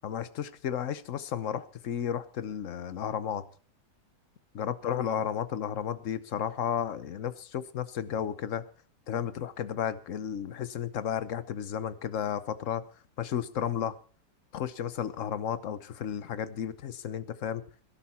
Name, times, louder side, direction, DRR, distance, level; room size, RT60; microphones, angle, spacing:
voice 1, 0.0-3.4 4.5-8.6 9.1-12.8 13.2-14.0 14.5-17.6, left 9 dB, 50° left, 14 dB, 1.0 m, -33 dB
17.5 x 12.0 x 4.3 m, 0.41 s
omnidirectional pair, 2.2 m